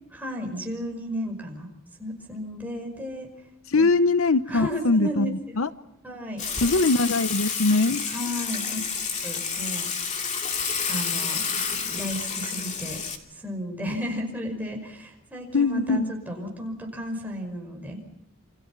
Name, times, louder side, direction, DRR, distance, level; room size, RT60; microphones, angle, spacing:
voice 1, 0.1-1.7 2.0-3.3 3.8-3.9 4.5-5.3 6.0-6.4 8.1-8.8 9.1-9.9 10.9-13.0 13.3-18.0, equal, 10° right, 1 dB, 5.6 m, -33 dB
voice 2, 3.7-5.7 6.6-8.0 15.5-16.1, left 3 dB, 70° left, 13 dB, 0.8 m, -22 dB
Water / Water tap faucet / Sink (filling or washing), 6.4-13.2, left 6 dB, 35° left, 2.5 m, -29 dB
28.5 x 25.5 x 6.0 m, 0.83 s
head